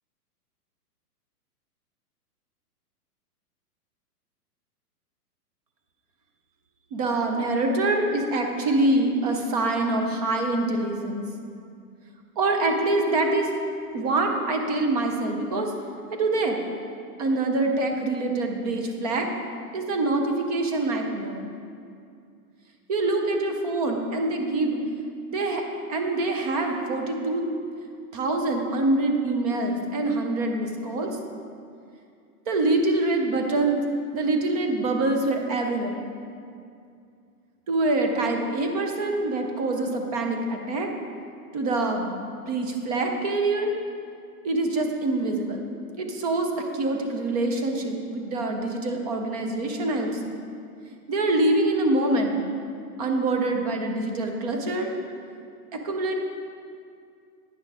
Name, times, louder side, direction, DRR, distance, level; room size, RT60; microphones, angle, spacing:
voice 1, 6.9-11.2 12.4-13.5 13.9-15.7 16.1-16.6 17.2-19.3 19.7-21.4 22.9-24.8 25.3-25.6 25.9-27.4 28.1-31.2 32.5-33.8 34.1-36.0 37.7-40.9 41.5-42.1 42.5-43.7 44.4-45.6 46.0-50.4 51.1-52.4 53.0-54.9 55.7-56.1, right 2 dB, 25° right, 3 dB, 0.6 m, -25 dB
9.4 x 6.3 x 4.8 m, 2.4 s
hypercardioid pair, 160°, 47 cm